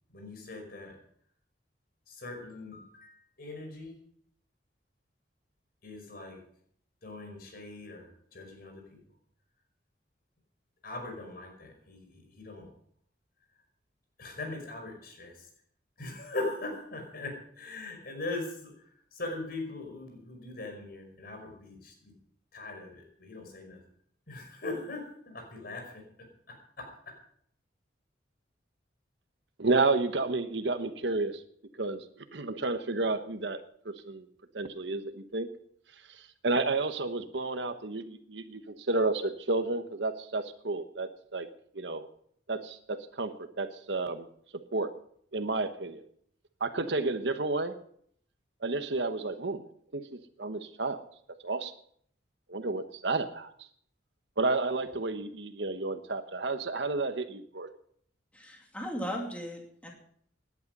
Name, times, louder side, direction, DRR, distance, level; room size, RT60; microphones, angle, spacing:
voice 1, 0.1-1.0 2.1-4.0 5.8-6.4 7.0-9.0 10.8-12.7 14.2-15.5 16.0-22.1 22.5-23.8 24.3-26.0 26.5-26.9, left 2 dB, 55° left, 3 dB, 5.5 m, -40 dB
voice 2, 29.6-31.4 31.8-33.6 33.8-34.3 34.5-35.5 36.1-41.5 41.7-42.1 42.5-44.3 44.7-44.9 45.3-46.0 46.6-47.8 48.6-49.6 49.9-50.1 50.4-51.0 51.4-51.7 52.5-53.5 54.4-57.7, right 3 dB, 70° right, 9 dB, 1.1 m, -31 dB
voice 3, 58.3-59.9, equal, 5° left, 0 dB, 2.7 m, -37 dB
18.0 x 11.0 x 5.4 m, 0.64 s
head